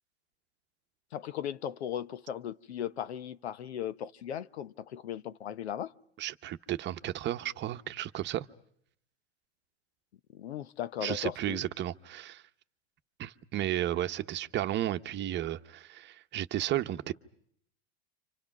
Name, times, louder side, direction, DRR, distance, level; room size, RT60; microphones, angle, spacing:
voice 1, 1.1-5.9 10.3-11.6, left 9 dB, 85° left, 0.9 m, -37 dB
voice 2, 6.2-8.5 11.0-12.4 13.2-17.1, right 13 dB, 35° right, 0.9 m, -33 dB
29.0 x 26.0 x 5.9 m
hypercardioid pair, 105°, 31 cm